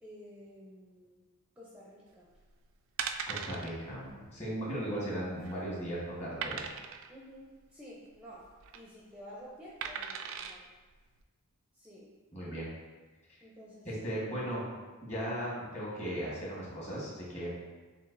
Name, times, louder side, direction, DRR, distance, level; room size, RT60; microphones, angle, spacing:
voice 1, 0.0-1.3 1.6-2.3 7.1-10.6 11.7-12.1 13.4-13.9, equal, 5° right, -6 dB, 0.5 m, -51 dB
sound 1, 2.3-2.5 3.0-3.7 4.1-4.2 4.5-4.6 5.2-5.6 6.4-7.1 8.4-8.8 9.8-10.6 11.2-11.3, right 7 dB, 60° right, 0.3 m, -38 dB
voice 2, 3.3-6.6 12.3-12.7 13.8-14.7 15.0-17.5, right 1 dB, 30° left, -6 dB, 1.4 m, -37 dB
7.0 x 2.4 x 2.6 m, 1.3 s
head